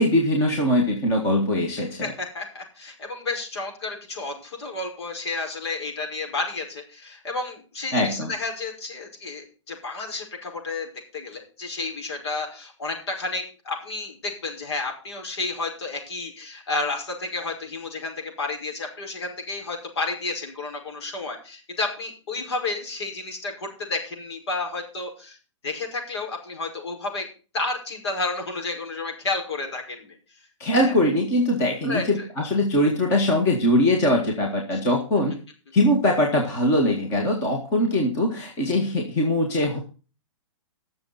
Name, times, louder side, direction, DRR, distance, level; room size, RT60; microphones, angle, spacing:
voice 1, 0.0-2.1 7.9-8.3 30.6-35.3 35.7-39.8, left 1 dB, 15° left, 1 dB, 1.8 m, -22 dB
voice 2, 1.8-25.4 25.6-27.3 27.5-30.2 30.7-30.9 31.8-32.3 34.7-34.8, left 3 dB, 55° left, 3 dB, 5.5 m, -31 dB
20.0 x 7.1 x 4.2 m, 0.35 s
hypercardioid pair, 175°, 16 cm